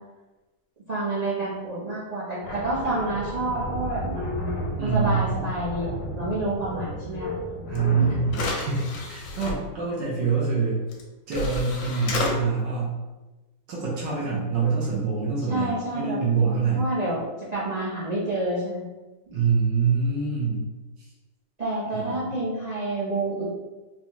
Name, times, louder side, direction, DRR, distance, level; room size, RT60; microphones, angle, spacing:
voice 1, 0.9-4.6 4.8-7.3 8.0-8.1 15.5-16.5 16.7-18.8 21.6-23.5, right 2 dB, 45° right, -8 dB, 0.5 m, -29 dB
sound 1, 2.4-9.8, left 1 dB, 60° left, 0.9 m, -33 dB
voice 2, 4.8-5.3 7.7-10.8 11.3-13.0 13.7-16.8 19.3-20.7 21.0-21.1 21.9-22.3, right 5 dB, 75° right, -6 dB, 1.4 m, -25 dB
sound 2, 7.7-7.8 8.3-9.5 10.9-11.0 11.3-12.3, left 2 dB, 80° left, 1.3 m, -30 dB
4.1 x 2.3 x 2.8 m, 1.1 s
omnidirectional pair, 2.1 m